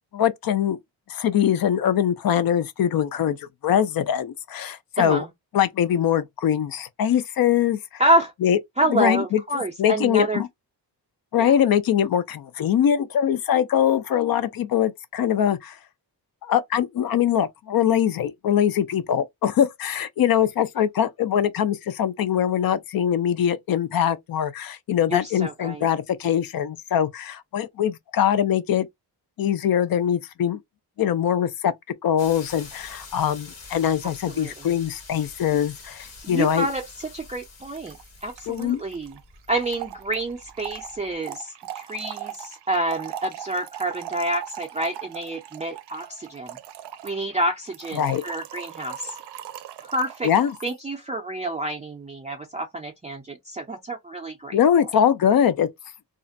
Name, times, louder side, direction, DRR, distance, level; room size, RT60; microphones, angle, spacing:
voice 1, 0.1-0.8 1.1-3.4 3.6-5.2 5.5-7.8 8.4-8.6 8.9-9.4 9.8-10.5 11.3-15.8 16.4-28.9 29.4-30.6 31.0-31.7 32.0-36.7 38.5-38.8 47.9-48.2 50.2-50.5 54.5-55.7, left 9 dB, 60° left, 0.5 m, -22 dB
voice 2, 5.0-5.3 8.0-8.3 8.8-10.4 11.4-11.6 25.1-25.9 34.3-34.7 36.2-38.0 38.2-39.2 39.5-46.6 47.0-49.1 49.8-50.3 50.6-54.6, right 1 dB, 20° right, 0.4 m, -28 dB
sound 1, 32.2-41.1, left 4 dB, 40° left, 0.9 m, -46 dB
Trickle dribble / Fill (with liquid), 37.0-37.1 37.3-37.4 37.6-50.7, right 11 dB, 80° right, 0.5 m, -39 dB
2.4 x 2.1 x 2.5 m
cardioid pair, 100°, 40 cm